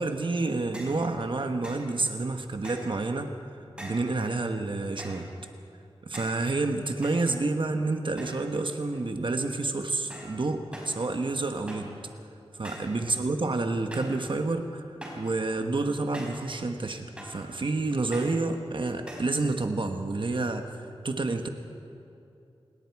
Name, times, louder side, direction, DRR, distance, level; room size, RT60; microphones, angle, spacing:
voice 1, 0.0-3.3 3.8-5.3 6.0-11.9 12.5-14.8 15.2-21.5, right 3 dB, 55° right, 5 dB, 1.2 m, -29 dB
sound 1, 0.7-1.0 1.6-1.9 2.6-3.0 3.8-4.1 5.0-5.3 6.1-6.5 7.0-7.7 8.2-8.6 8.9-9.3 10.1-10.4 10.7-11.0 11.7-12.0 12.6-13.0 13.9-14.2 15.0-15.3 16.1-16.5 17.2-17.5 18.1-18.4 19.1-19.4, equal, 10° right, 5.5 m, -43 dB
27.0 x 20.5 x 4.7 m, 2.6 s
wide cardioid pair, 90°, 10 cm